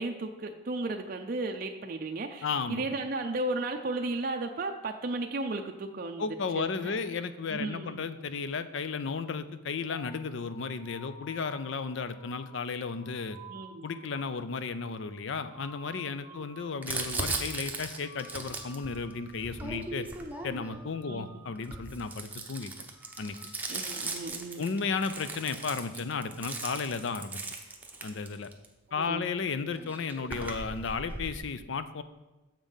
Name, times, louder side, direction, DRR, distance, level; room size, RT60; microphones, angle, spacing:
voice 1, 0.0-6.3 6.5-6.9 7.5-8.1 13.5-14.0 16.3-16.5 21.1-21.4 23.7-24.7 29.0-29.3, right 2 dB, 40° right, 4 dB, 0.4 m, -34 dB
voice 2, 2.4-2.8 6.2-13.4 13.8-20.1 20.4-22.7 23.2-23.4 24.6-27.4 28.0-28.5 28.9-32.0, left 5 dB, 60° left, 12 dB, 0.4 m, -34 dB
sound 1, 9.9-16.9 17.1-17.6 17.9-19.4 19.7-20.1 20.4-21.9 22.2-22.6 22.9-24.3, equal, 80° left, 1.8 m, -53 dB
Crumpling crinkling, 16.8-20.9 21.6-28.7 29.5-29.6 29.8-31.4, right 3 dB, 10° right, 0.7 m, -38 dB
7.3 x 5.3 x 5.5 m, 1.1 s
head